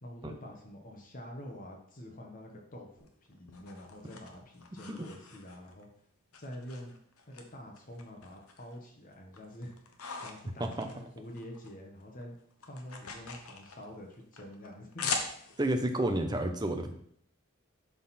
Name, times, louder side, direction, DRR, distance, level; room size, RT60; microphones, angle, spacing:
voice 1, 0.0-5.9 6.4-6.9 7.3-9.7 10.2-12.3 12.7-15.1, left 1 dB, 40° left, 1 dB, 1.2 m, -47 dB
sound 1, 3.0-5.8 6.3-7.4 7.8-8.8 9.1-11.7 12.0-15.8, left 4 dB, 85° left, 1.1 m, -42 dB
voice 2, 15.6-16.9, right 1 dB, 20° right, 5 dB, 0.7 m, -30 dB
11.5 x 3.9 x 4.2 m, 0.65 s
head